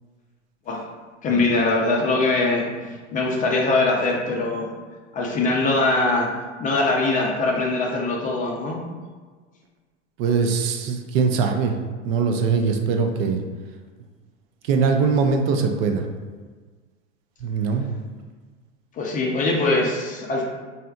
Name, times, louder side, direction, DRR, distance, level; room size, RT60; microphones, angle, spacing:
voice 1, 1.2-2.6 3.1-4.7 5.1-6.3 6.6-8.8 18.9-20.4, left 2 dB, 25° left, -1 dB, 0.4 m, -22 dB
voice 2, 10.2-11.8 12.0-13.4 14.6-16.1 17.4-17.9, right 5 dB, 55° right, 4 dB, 0.5 m, -21 dB
3.2 x 2.7 x 2.3 m, 1.4 s
hypercardioid pair, 95°, 37 cm